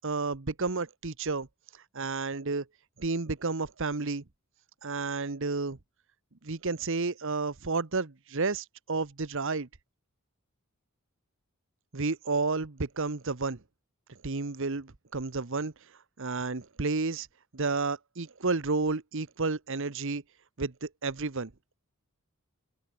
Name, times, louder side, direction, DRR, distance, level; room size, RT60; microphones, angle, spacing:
voice 1, 0.0-1.5 1.9-2.7 3.0-4.2 4.8-5.8 6.4-9.7 11.9-13.6 14.1-15.7 16.2-17.3 17.5-20.2 20.6-21.5, right 3 dB, 60° right, 1.1 m, -31 dB
open air
head